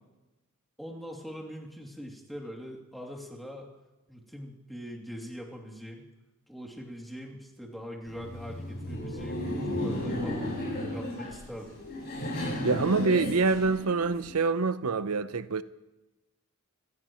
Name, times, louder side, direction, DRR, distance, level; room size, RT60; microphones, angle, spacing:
voice 1, 0.8-3.7 4.1-6.1 6.5-9.4 9.7-10.5 10.9-11.7, equal, ahead, 2.8 m, -42 dB
Laughter, 8.1-14.3, left 1 dB, 50° left, 7.8 m, -34 dB
voice 2, 12.6-15.6, right 4 dB, 90° right, 0.8 m, -26 dB
28.5 x 16.0 x 3.1 m
head